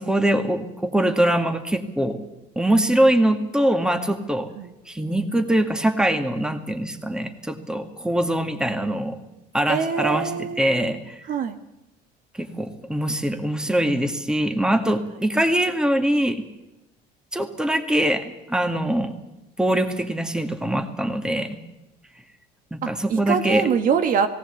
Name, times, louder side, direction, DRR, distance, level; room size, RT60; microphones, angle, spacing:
voice 1, 0.0-2.2 2.6-4.5 4.9-9.2 9.5-11.2 12.4-16.4 17.3-19.1 19.6-21.6 22.7-23.8, right 1 dB, 5° right, 7 dB, 1.9 m, -23 dB
voice 2, 9.7-10.9 11.2-11.6 22.8-24.3, right 7 dB, 55° right, 8 dB, 1.4 m, -24 dB
18.0 x 17.5 x 8.3 m, 0.92 s
cardioid pair, 110°, 17 cm